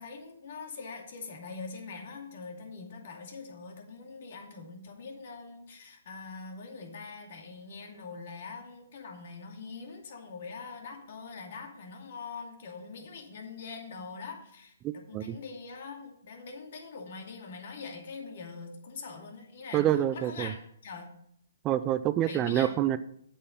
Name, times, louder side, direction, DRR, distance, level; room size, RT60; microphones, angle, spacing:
voice 1, 0.0-21.1 22.2-22.8, left 4 dB, 55° left, 2 dB, 2.5 m, -43 dB
voice 2, 19.7-20.5 21.6-23.0, right 12 dB, 25° right, 14 dB, 0.4 m, -26 dB
8.2 x 7.6 x 5.5 m, 0.70 s
hypercardioid pair, 135°, 0 cm